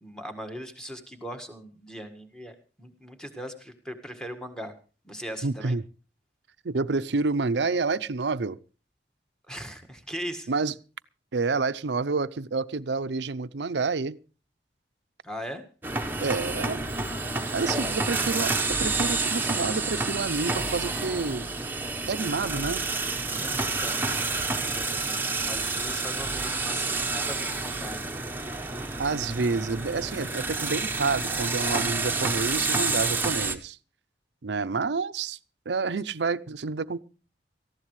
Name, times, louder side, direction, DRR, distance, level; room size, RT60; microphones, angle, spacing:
voice 1, 0.0-4.7 5.0-5.8 9.5-10.5 15.2-15.6 17.7-17.8 23.3-24.0 24.6-28.1, equal, 5° left, 1.7 m, -40 dB
voice 2, 5.4-5.8 6.6-8.6 10.5-10.7 11.3-14.2 16.2-16.8 17.5-21.5 22.1-22.8 29.0-33.8 34.4-35.4 35.7-37.0, right 4 dB, 75° right, 0.6 m, -28 dB
sound 1, 15.8-33.6, right 3 dB, 10° right, 1.1 m, -29 dB
19.0 x 14.5 x 3.2 m
head